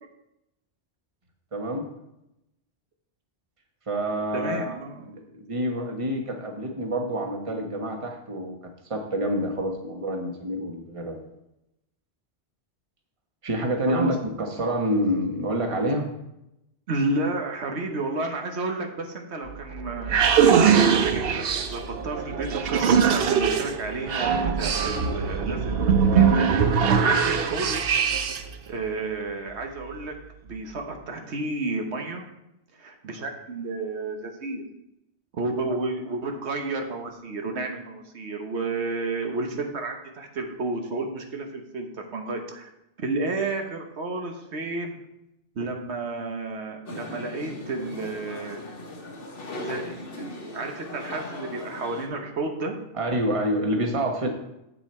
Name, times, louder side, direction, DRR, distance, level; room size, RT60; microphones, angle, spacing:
voice 1, 1.5-1.9 3.9-4.7 5.0-8.6 8.9-11.2 13.4-16.1 52.9-54.3, equal, 30° right, 2 dB, 1.2 m, -27 dB
voice 2, 4.3-5.1 13.9-14.1 16.9-20.2 20.6-21.4 21.7-27.7 28.7-30.1 30.4-32.2 32.8-34.6 35.3-42.7 43.0-45.0 45.5-48.6 49.6-52.8, right 3 dB, 85° right, 3 dB, 1.4 m, -31 dB
sound 1, 19.5-28.6, right 7 dB, 65° right, 0.9 m, -22 dB
sound 2, 46.9-52.1, left 2 dB, 60° left, 1.3 m, -38 dB
8.1 x 6.8 x 4.4 m, 0.86 s
omnidirectional pair, 1.1 m